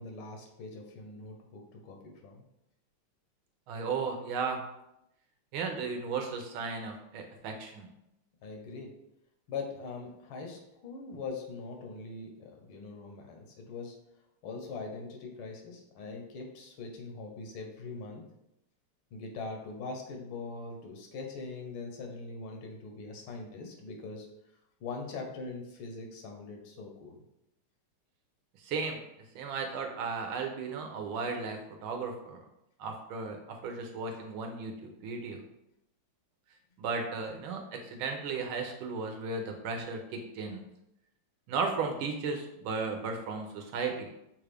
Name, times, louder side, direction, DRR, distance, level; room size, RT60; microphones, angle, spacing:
voice 1, 0.0-2.4 8.4-8.9 9.5-14.0 14.4-18.2 19.1-24.3 24.8-27.2, left 4 dB, 75° left, 2 dB, 1.5 m, -42 dB
voice 2, 3.7-4.6 5.5-7.9 28.6-29.0 29.3-32.4 32.8-35.4 36.8-40.6 41.5-44.1, right 4 dB, 75° right, 3 dB, 1.4 m, -35 dB
6.2 x 2.4 x 3.3 m, 0.83 s
omnidirectional pair, 2.4 m